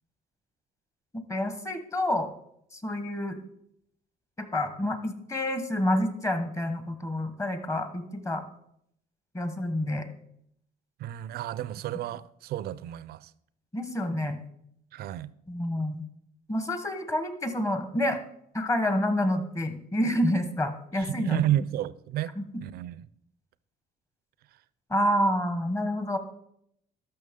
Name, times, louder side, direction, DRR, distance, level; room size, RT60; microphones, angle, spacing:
voice 1, 1.1-2.3 2.7-3.4 4.4-8.4 9.3-10.0 13.7-14.4 15.5-16.0 16.5-18.2 18.5-21.4 22.4-22.5 24.9-26.2, left 1 dB, 15° left, 1.1 m, -28 dB
voice 2, 11.0-13.3 14.9-15.3 21.0-22.3 22.6-23.1, right 12 dB, 65° right, 0.4 m, -31 dB
12.5 x 5.9 x 3.6 m
cardioid pair, 110°, 17 cm